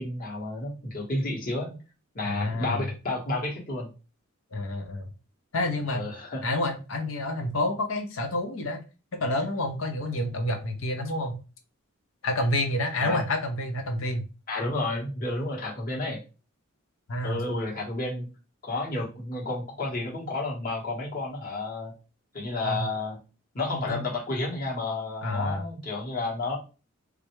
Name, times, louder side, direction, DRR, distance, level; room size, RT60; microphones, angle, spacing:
voice 1, 0.0-1.8 2.1-3.9 5.9-6.4 12.9-13.2 14.5-16.2 17.2-18.3 18.6-21.9 22.3-23.2 23.5-26.6, left 2 dB, 45° left, -2 dB, 1.2 m, -31 dB
voice 2, 2.2-2.9 4.5-5.1 5.5-6.0 6.4-8.8 9.2-11.4 12.2-14.3 17.1-17.4 22.6-22.9 23.7-24.0 25.2-25.6, left 1 dB, 75° left, 5 dB, 0.7 m, -29 dB
3.2 x 2.5 x 3.0 m, 0.32 s
head